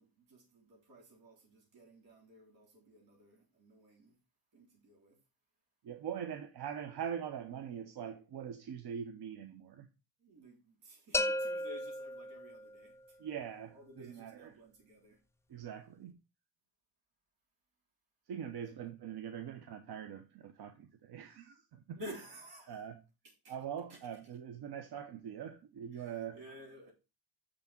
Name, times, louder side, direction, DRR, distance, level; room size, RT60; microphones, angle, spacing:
voice 1, 0.0-4.2 4.5-5.2 10.2-13.0 13.7-15.2 18.7-18.8 21.9-22.8 23.4-23.5 23.9-24.0 25.9-26.9, equal, 85° right, 3.9 m, -53 dB
voice 2, 5.8-9.9 13.2-14.5 15.5-16.2 18.3-22.0 22.7-23.0 23.5-26.4, right 8 dB, 60° right, 0.9 m, -43 dB
sound 1, 11.1-13.0, left 1 dB, 5° left, 0.3 m, -35 dB
6.7 x 3.6 x 5.8 m
supercardioid pair, 70°, 43 cm